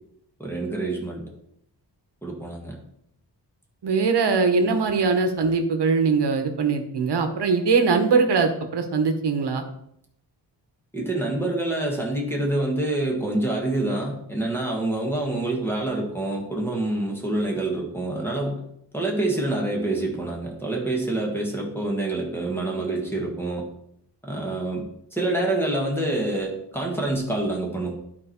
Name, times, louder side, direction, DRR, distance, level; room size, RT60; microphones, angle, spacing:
voice 1, 0.4-1.2 2.2-2.8 10.9-18.6 18.9-23.6 24.2-27.9, right 2 dB, 5° left, -1 dB, 1.7 m, -26 dB
voice 2, 3.8-9.6, right 4 dB, 70° right, 6 dB, 1.2 m, -21 dB
11.5 x 4.7 x 4.4 m, 0.73 s
wide cardioid pair, 170°, 42 cm